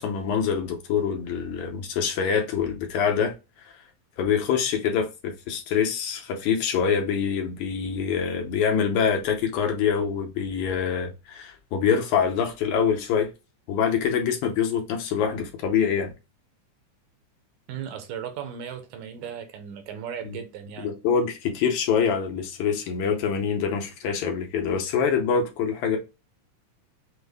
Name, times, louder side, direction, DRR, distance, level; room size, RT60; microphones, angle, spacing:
voice 1, 0.0-3.3 3.6-3.7 4.2-13.3 13.7-16.1 20.2-20.4 20.8-26.0, left 7 dB, 75° left, 2.1 m, -25 dB
voice 2, 17.7-20.9, right 8 dB, 75° right, 2.0 m, -36 dB
6.1 x 2.1 x 3.3 m
omnidirectional pair, 3.7 m